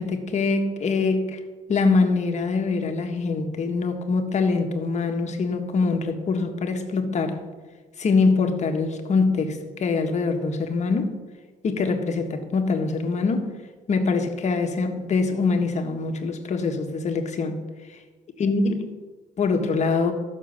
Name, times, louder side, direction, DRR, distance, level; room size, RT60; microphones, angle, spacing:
voice 1, 0.0-1.4 1.7-7.4 8.0-11.2 11.6-13.5 13.9-17.6 18.4-19.0 19.4-20.1, left 4 dB, 45° left, 5 dB, 1.6 m, -24 dB
13.5 x 6.7 x 6.6 m, 1.3 s
cardioid pair, 110°, 17 cm